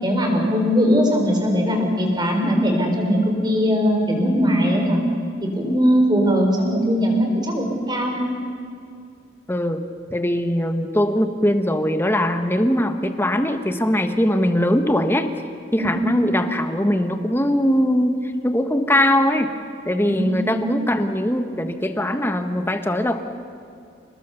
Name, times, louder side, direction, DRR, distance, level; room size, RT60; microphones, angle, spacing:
voice 1, 0.0-5.0 5.4-8.3 16.1-16.3 20.1-20.7, equal, 25° right, 2 dB, 4.1 m, -20 dB
voice 2, 9.5-9.8 10.1-15.3 15.7-19.5 19.8-23.2, left 1 dB, 10° left, 7 dB, 1.3 m, -21 dB
28.5 x 20.0 x 6.9 m, 2.5 s
head